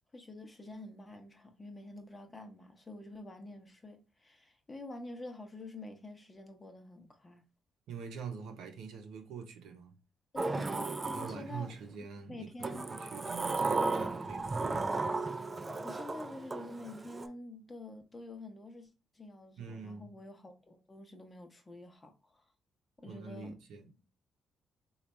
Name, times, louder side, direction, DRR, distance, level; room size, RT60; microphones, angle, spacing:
voice 1, 0.1-7.4 10.3-11.7 12.3-12.9 15.8-18.9 19.1-22.4 23.0-23.6, left 2 dB, 20° left, 0.8 m, -47 dB
voice 2, 7.9-10.0 11.1-15.2 19.6-20.1 23.1-23.9, right 5 dB, 85° right, 0.7 m, -45 dB
Sliding door, 10.4-11.9 12.6-17.3, right 3 dB, 25° right, 0.3 m, -35 dB
3.2 x 2.4 x 4.1 m
cardioid pair, 90°, 0 cm